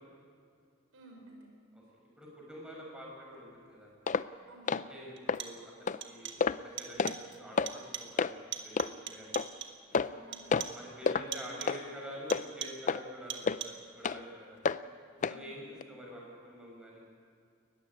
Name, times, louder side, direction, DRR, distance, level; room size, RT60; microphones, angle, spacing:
voice 1, 0.9-1.5 4.5-4.8 9.9-10.6 11.1-12.3 14.6-14.8 15.1-15.6, right 1 dB, 80° right, 2 dB, 4.5 m, -53 dB
voice 2, 2.2-3.9 4.7-9.3 10.7-14.6 15.3-17.0, equal, 5° right, -3 dB, 6.3 m, -47 dB
sound 1, 4.1-4.3 4.7-4.9 5.3-5.4 5.9-6.0 6.4-6.6 7.0-7.2 7.6-7.7 8.2-8.3 8.8-8.9 9.3-9.5 9.9-10.2 10.5-10.7 11.1-11.3 11.7-11.8 12.3-12.4 12.9-13.0 13.5-13.6 14.0-14.2 14.7-14.8 15.2-15.4 15.8-15.9, left 5 dB, 35° left, 0.4 m, -29 dB
sound 2, 4.1-4.2 5.2-5.7 6.0-6.5 6.8-7.3 7.7-8.2 8.5-9.9 10.3-10.9 11.3-11.9 12.3-12.9 13.3-13.9, right 9 dB, 60° right, 1.6 m, -43 dB
20.0 x 14.5 x 9.7 m, 2.2 s
head